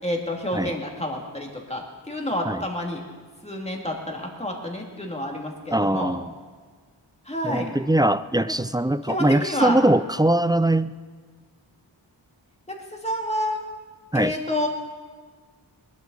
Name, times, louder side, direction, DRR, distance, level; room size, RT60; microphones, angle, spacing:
voice 1, 0.0-3.0 3.4-6.1 7.3-7.7 9.1-9.8 13.0-13.6 14.1-14.7, left 1 dB, 15° left, 0 dB, 2.5 m, -29 dB
voice 2, 5.7-6.3 7.4-10.9 14.1-14.3, right 1 dB, 10° right, 14 dB, 0.3 m, -21 dB
21.0 x 12.0 x 4.1 m, 1.5 s
wide cardioid pair, 70°, 44 cm